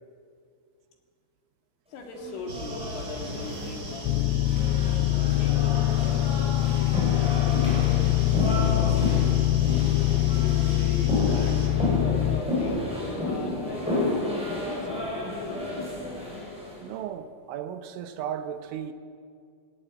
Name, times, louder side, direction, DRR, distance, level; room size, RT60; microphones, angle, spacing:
voice 1, 1.9-9.5 10.3-16.0, left 3 dB, 60° left, 3.8 m, -40 dB
sound 1, 2.1-16.8, left 1 dB, ahead, 7.0 m, -32 dB
sound 2, 2.5-11.7, equal, 25° right, 3.5 m, -39 dB
sound 3, 4.0-12.4, left 15 dB, 85° left, 2.6 m, -23 dB
voice 2, 16.8-18.9, right 9 dB, 80° right, 3.1 m, -35 dB
19.0 x 18.5 x 8.8 m
omnidirectional pair, 5.7 m